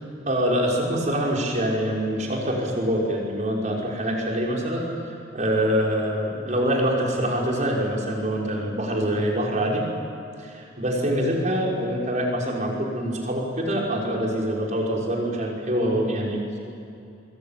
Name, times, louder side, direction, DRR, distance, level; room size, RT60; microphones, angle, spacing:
voice 1, 0.3-9.8 10.4-16.6, equal, 40° right, -2 dB, 6.0 m, -25 dB
25.0 x 22.5 x 9.2 m, 2.7 s
head